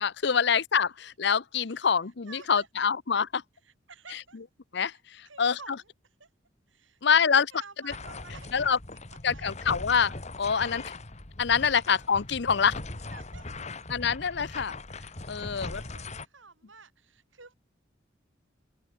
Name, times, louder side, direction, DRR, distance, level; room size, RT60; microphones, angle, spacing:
voice 1, 0.0-3.4 4.7-4.9 5.4-5.6 7.0-7.4 8.5-8.8 9.2-10.8 11.4-12.7 13.9-14.8 15.3-15.8, left 6 dB, 60° left, 0.7 m, -25 dB
voice 2, 2.2-2.7 3.6-4.4 4.8-6.3 6.7-9.5 11.6-11.8 13.1-13.9 15.2-17.5, right 4 dB, 85° right, 6.2 m, -52 dB
sound 1, 7.9-16.3, left 2 dB, 35° left, 1.9 m, -40 dB
open air
head